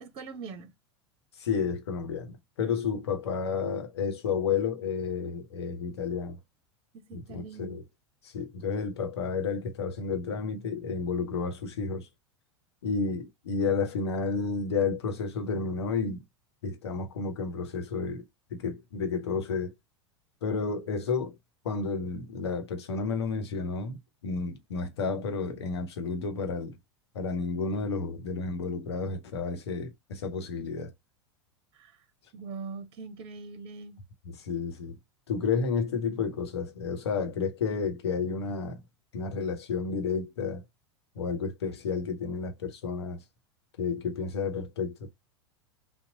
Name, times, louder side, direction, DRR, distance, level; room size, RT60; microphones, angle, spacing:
voice 1, 0.0-0.7 6.9-7.8 31.7-31.9 32.3-34.0, right 4 dB, 35° right, 0.7 m, -42 dB
voice 2, 1.4-6.4 7.1-7.8 8.2-12.1 12.8-16.2 16.6-18.2 18.5-19.7 20.4-21.3 21.6-24.0 24.2-26.8 27.1-30.9 34.2-35.0 35.3-38.8 39.1-40.6 41.1-43.2 43.8-45.1, left 5 dB, 65° left, 0.9 m, -31 dB
2.9 x 2.0 x 3.7 m
figure-of-eight pair, 85°, 15 cm